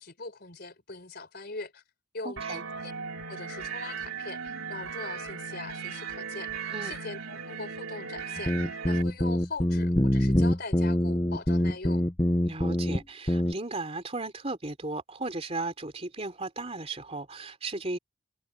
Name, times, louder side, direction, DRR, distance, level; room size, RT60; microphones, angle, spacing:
voice 1, 0.0-1.8 2.1-2.9 3.3-6.5 6.8-12.0, left 3 dB, 50° left, 4.4 m, -41 dB
voice 2, 2.2-2.6 6.7-7.0 12.4-18.0, right 2 dB, 30° right, 3.2 m, -36 dB
sound 1, 2.4-9.0, right 6 dB, 90° right, 3.6 m, -37 dB
sound 2, 8.4-13.0 13.3-13.5, left 1 dB, 15° left, 1.0 m, -25 dB
head